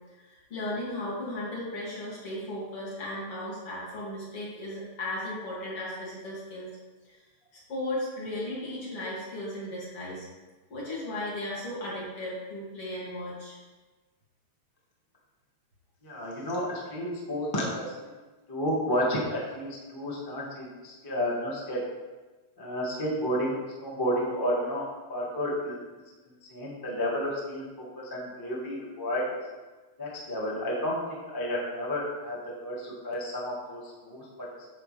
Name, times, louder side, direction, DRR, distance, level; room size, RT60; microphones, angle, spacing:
voice 1, 0.1-6.7 7.0-7.2 7.7-10.3 10.7-13.6, left 1 dB, 50° left, -7 dB, 3.3 m, -36 dB
voice 2, 16.0-18.1 18.5-21.8 22.6-25.8 26.5-29.2 30.0-34.3, equal, 15° left, -4 dB, 0.7 m, -31 dB
9.5 x 6.7 x 3.3 m, 1.2 s
omnidirectional pair, 3.3 m